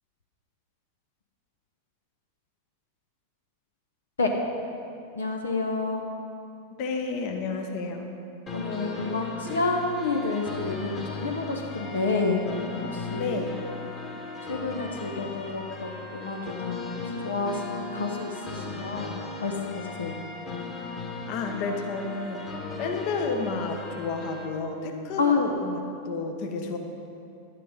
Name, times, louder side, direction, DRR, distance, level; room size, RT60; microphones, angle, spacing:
voice 1, 5.1-6.0 8.5-12.4 12.9-13.4 14.4-16.9 17.2-20.2 25.2-25.4, left 4 dB, 70° left, 2 dB, 1.0 m, -29 dB
voice 2, 6.8-8.1 13.1-13.5 21.3-22.5 22.8-26.8, left 4 dB, 45° left, 4 dB, 1.1 m, -31 dB
sound 1, 8.5-24.5, left 3 dB, 25° left, 1.7 m, -37 dB
11.5 x 9.8 x 5.3 m, 2.6 s
figure-of-eight pair, 90°, 0 cm